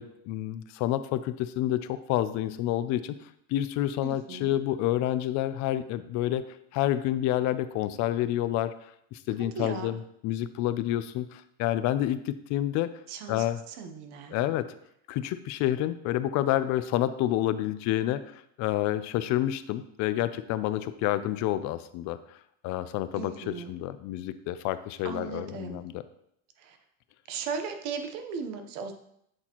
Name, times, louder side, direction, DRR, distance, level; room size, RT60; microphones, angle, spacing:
voice 1, 0.0-3.2 3.5-6.4 6.7-8.7 9.1-12.9 13.3-13.6 14.3-14.7 15.1-22.2 22.6-26.0, left 13 dB, 60° left, 13 dB, 0.4 m, -29 dB
voice 2, 4.0-4.5 9.5-9.9 13.1-14.4 23.1-23.7 25.0-25.8 26.6-26.8 27.3-28.9, right 5 dB, 75° right, 6 dB, 0.9 m, -37 dB
7.8 x 4.2 x 2.9 m, 0.74 s
cardioid pair, 145°, 34 cm